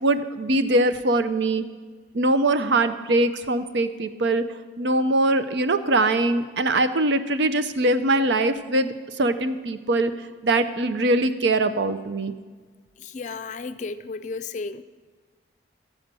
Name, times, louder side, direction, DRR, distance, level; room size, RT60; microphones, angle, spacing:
voice 1, 0.0-1.6 2.1-4.4 4.8-8.9 9.2-10.1 10.4-12.3, right 2 dB, 75° right, 10 dB, 0.6 m, -22 dB
voice 2, 13.0-14.8, left 4 dB, 40° left, 12 dB, 0.4 m, -33 dB
14.0 x 5.0 x 7.5 m, 1.5 s
head